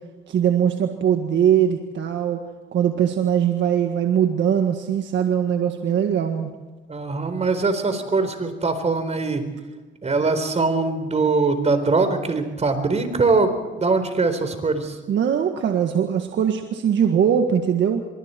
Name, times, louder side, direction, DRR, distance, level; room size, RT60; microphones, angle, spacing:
voice 1, 0.3-2.4 2.7-6.5 15.1-18.0, right 8 dB, 65° right, 4 dB, 1.7 m, -21 dB
voice 2, 6.9-9.4 10.0-14.9, right 3 dB, 35° right, 9 dB, 4.1 m, -22 dB
25.0 x 23.0 x 4.5 m, 1.3 s
cardioid pair, 90°, 20 cm